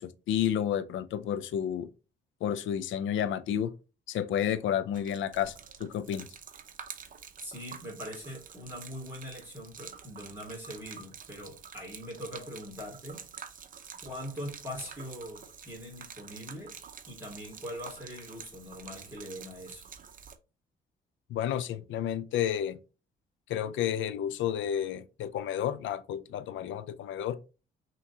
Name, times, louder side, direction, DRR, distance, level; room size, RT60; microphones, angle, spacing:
voice 1, 0.0-1.9 2.4-3.7 4.1-5.5 5.8-6.3 21.3-22.8 23.5-27.4, left 10 dB, 75° left, 0.5 m, -31 dB
Gurgling / Liquid, 4.9-20.4, right 7 dB, 45° right, 0.7 m, -48 dB
voice 2, 7.4-13.2 14.0-16.8 17.1-19.8, equal, 10° right, 2.5 m, -42 dB
5.9 x 3.0 x 2.8 m
cardioid pair, 90°, 20 cm